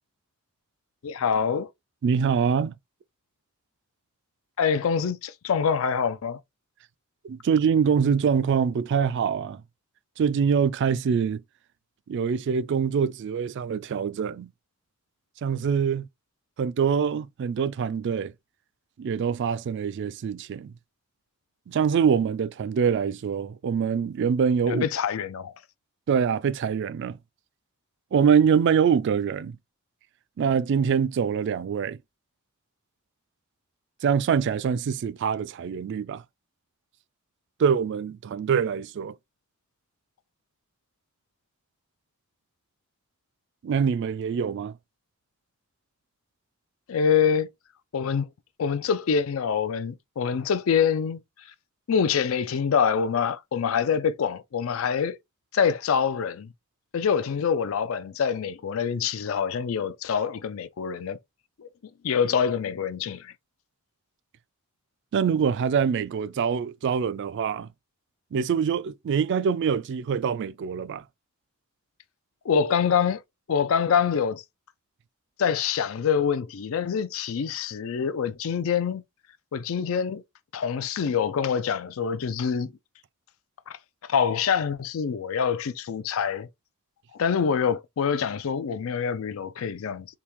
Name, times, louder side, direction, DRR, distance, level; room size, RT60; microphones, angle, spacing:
voice 1, 1.0-1.7 4.6-6.4 24.7-25.5 46.9-47.5 47.9-48.3 48.6-51.2 51.9-55.2 55.5-56.5 56.9-61.2 61.6-61.7 62.0-63.3 72.4-73.2 73.5-74.4 75.4-79.0 79.5-80.2 80.5-82.7 83.7-83.8 84.1-86.5 87.1-90.1, left 7 dB, 70° left, 0.4 m, -25 dB
voice 2, 2.0-2.8 7.3-9.6 10.2-11.4 12.1-14.5 15.4-16.1 16.6-18.3 19.0-20.7 21.7-24.8 26.1-27.2 28.1-29.6 30.4-32.0 34.0-36.2 37.6-39.1 43.6-44.7 65.1-67.7 68.3-71.0, right 7 dB, 55° right, 0.3 m, -24 dB
3.6 x 2.7 x 2.9 m
head